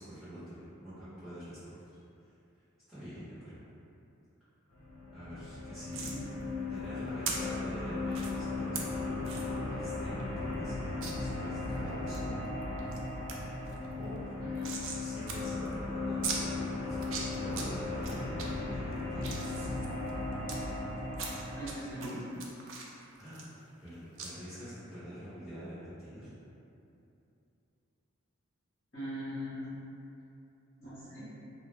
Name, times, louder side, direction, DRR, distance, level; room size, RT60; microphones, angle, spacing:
voice 1, 0.0-1.9 2.9-3.6 5.1-6.1 6.7-12.3 14.0-14.2 15.0-19.7 23.2-23.5 23.8-26.3, equal, ahead, -18 dB, 1.0 m, -45 dB
sound 1, 4.7-21.7, left 2 dB, 65° left, 0.6 m, -37 dB
sound 2, 5.9-6.2 7.2-7.3 8.1-8.3 8.7-8.8 9.2-9.5 9.9-10.0 10.2-10.3 11.0-11.1 11.6-12.2 12.6-13.0 13.3-13.4 13.7-15.0 15.3-15.4 15.6-15.7 16.2-16.4 16.9-17.6 18.0-18.4 18.9-20.6 21.1-21.7 22.0-23.9 24.2-24.3, right 5 dB, 60° right, 0.3 m, -39 dB
voice 2, 14.4-14.7 21.5-22.3 28.9-29.7 30.8-31.3, equal, 40° left, -13 dB, 0.9 m, -41 dB
2.3 x 2.0 x 3.1 m, 2.7 s
head